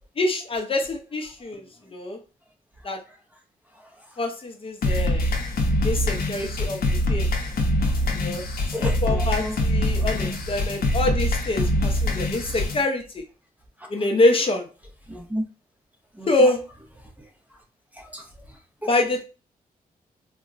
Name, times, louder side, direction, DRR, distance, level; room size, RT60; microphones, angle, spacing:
voice 1, 0.2-1.7 1.9-2.2 2.8-3.0 4.2-5.3 5.8-7.3 8.1-8.4 9.0-13.2 13.9-14.7 16.3-16.6 18.9-19.2, left 2 dB, 35° left, 3 dB, 0.6 m, -25 dB
sound 1, 4.8-12.8, left 1 dB, 80° left, 0.7 m, -24 dB
voice 2, 8.7-9.6 9.9-10.3 13.8-13.9 15.1-15.4 16.2-16.5 17.2-17.3 17.9-18.3 18.8-18.9, equal, 10° right, 0 dB, 0.6 m, -33 dB
3.7 x 2.1 x 2.4 m, 0.31 s
wide cardioid pair, 135°, 15 cm